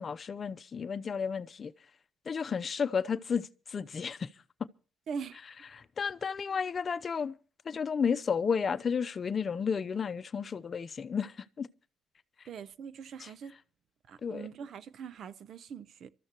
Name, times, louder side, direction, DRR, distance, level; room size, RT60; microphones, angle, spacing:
voice 1, 0.0-1.7 2.3-4.3 5.7-7.3 7.6-11.7 13.2-13.3 14.2-14.5, left 6 dB, 45° left, 0.7 m, -32 dB
voice 2, 5.1-5.4 12.5-13.5 14.1-16.1, right 6 dB, 65° right, 0.7 m, -42 dB
26.0 x 13.5 x 3.0 m
cardioid pair, 90°, 0 cm